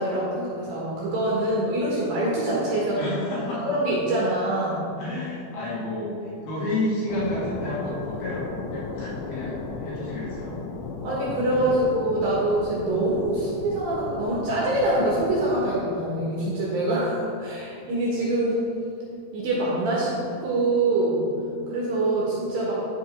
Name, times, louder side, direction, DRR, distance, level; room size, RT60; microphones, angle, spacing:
voice 1, 0.0-3.0 3.5-4.8 11.0-18.6 19.3-20.1 20.4-21.2 21.7-22.7, right 1 dB, 65° right, -6 dB, 2.6 m, -25 dB
voice 2, 2.9-3.7 5.0-10.6 11.5-11.8, left 1 dB, 60° left, -7 dB, 3.4 m, -31 dB
sound 1, 7.1-15.8, left 4 dB, 80° left, 2.7 m, -36 dB
10.0 x 5.4 x 4.3 m, 2.6 s
omnidirectional pair, 5.3 m